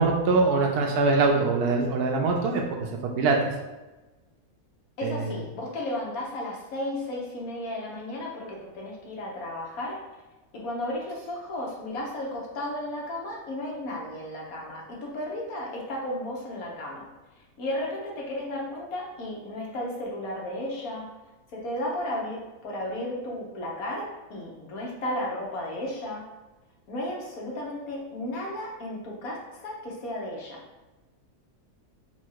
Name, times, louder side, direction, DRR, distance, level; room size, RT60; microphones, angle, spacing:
voice 1, 0.0-2.6 3.0-3.4 5.0-5.4, right 3 dB, 75° right, 2 dB, 1.2 m, -23 dB
voice 2, 5.0-10.0 10.5-17.1 17.6-21.1 21.5-26.3 26.9-30.6, left 1 dB, 65° left, -2 dB, 1.4 m, -34 dB
4.3 x 2.3 x 4.5 m, 1.1 s
omnidirectional pair, 1.7 m